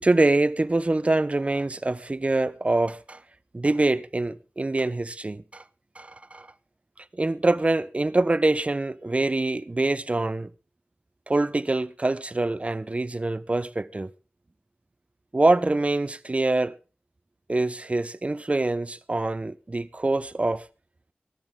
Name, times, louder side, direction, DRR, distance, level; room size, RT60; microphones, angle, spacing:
voice 1, 0.0-3.2 3.5-5.6 6.0-6.5 7.2-10.5 11.3-14.1 15.3-16.8 17.5-20.7, right 2 dB, 35° right, 0.8 m, -25 dB
19.5 x 13.5 x 3.7 m
wide cardioid pair, 75°, 4 cm